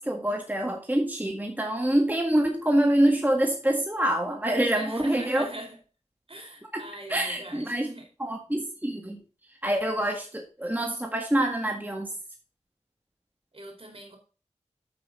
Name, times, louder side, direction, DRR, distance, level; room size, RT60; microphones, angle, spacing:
voice 1, 0.0-5.5 6.7-6.8 7.1-7.9 8.2-9.2 9.6-12.1, right 1 dB, 15° right, 1.7 m, -26 dB
voice 2, 4.7-5.8 6.3-8.1 13.5-14.2, right 1 dB, 50° right, 4.0 m, -41 dB
8.3 x 7.7 x 3.8 m
wide cardioid pair, 45°, 12 cm